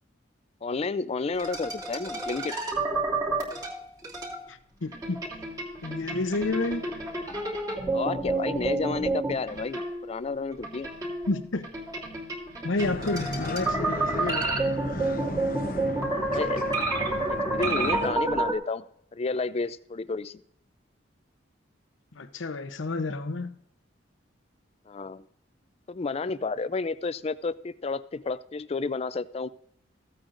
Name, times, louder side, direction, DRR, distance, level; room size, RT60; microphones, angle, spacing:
voice 1, 0.6-2.5 7.9-10.9 16.3-16.6 17.3-18.8 19.1-20.4 24.9-25.2 25.9-29.5, left 4 dB, 30° left, 0.4 m, -31 dB
sound 1, 1.4-4.4 4.9-10.2 10.6-18.5, right 2 dB, 20° right, 3.0 m, -30 dB
voice 2, 4.5-5.2 5.8-6.9 11.3-11.7 12.6-14.6 22.2-23.6, left 2 dB, 80° left, 0.8 m, -30 dB
sound 2, 12.8-18.1, left 2 dB, 50° left, 0.8 m, -35 dB
15.5 x 8.7 x 2.5 m
head